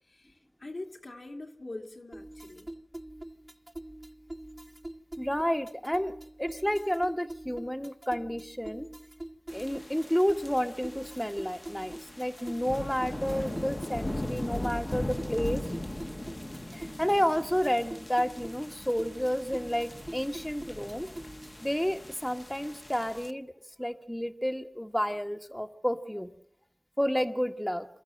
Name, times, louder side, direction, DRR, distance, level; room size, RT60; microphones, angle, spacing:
voice 1, 0.1-2.7, left 2 dB, 80° left, 2 dB, 2.7 m, -43 dB
sound 1, 2.1-21.7, right 1 dB, 35° right, 1.0 m, -44 dB
voice 2, 5.2-6.1 6.4-8.9 9.5-15.6 16.7-21.1 21.6-23.5 23.8-26.3 27.0-27.9, equal, 10° left, 5 dB, 1.4 m, -30 dB
sound 2, 9.5-23.3, left 1 dB, 35° left, 1.1 m, -39 dB
27.5 x 14.0 x 7.7 m, 0.71 s
wide cardioid pair, 50°, 0 cm